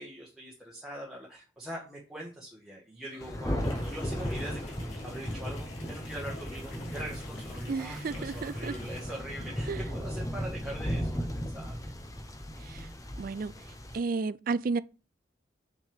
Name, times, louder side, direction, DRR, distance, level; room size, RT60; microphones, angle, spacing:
voice 1, 0.0-11.9, right 1 dB, ahead, 1.5 m, -43 dB
sound 1, 3.1-10.0, left 3 dB, 50° left, 0.7 m, -52 dB
Thunder, 3.2-14.0, equal, 15° left, 0.8 m, -36 dB
sound 2, 3.6-9.0, left 3 dB, 80° left, 2.7 m, -53 dB
voice 2, 7.7-8.7 9.7-9.8 12.7-12.9 13.2-13.5 13.9-14.8, right 4 dB, 45° right, 0.4 m, -32 dB
7.4 x 6.2 x 3.5 m
head